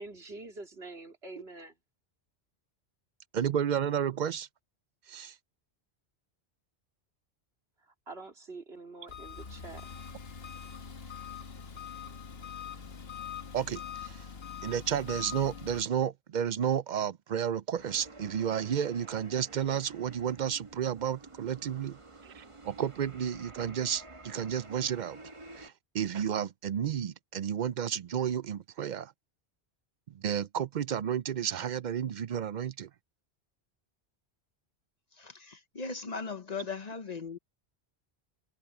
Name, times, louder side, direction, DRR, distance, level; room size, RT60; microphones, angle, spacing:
voice 1, 0.0-1.7 8.1-9.9, right 3 dB, 75° right, 3.2 m, -45 dB
voice 2, 3.3-4.5 5.1-5.3 13.5-14.3 14.6-25.2 25.6-29.1 30.1-32.9, right 8 dB, 55° right, 0.6 m, -32 dB
Engine, 9.1-15.8, left 7 dB, 70° left, 1.7 m, -43 dB
sound 1, 17.8-25.7, right 2 dB, 30° right, 1.2 m, -51 dB
voice 3, 35.2-37.4, left 4 dB, 40° left, 1.0 m, -38 dB
omnidirectional pair, 1.1 m